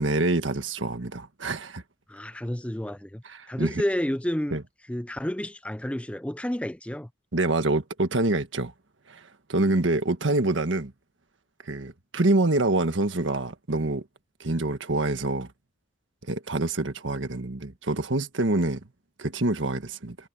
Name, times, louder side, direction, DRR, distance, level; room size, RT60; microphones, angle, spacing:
voice 1, 0.0-1.8 3.3-3.7 4.5-4.6 7.3-8.7 9.1-9.2 9.5-10.9 11.7-14.0 14.4-15.5 16.3-18.8 19.2-20.2, right 2 dB, 90° right, 1.6 m, -26 dB
voice 2, 2.1-4.6 4.9-7.1, equal, 5° left, 0.5 m, -30 dB
head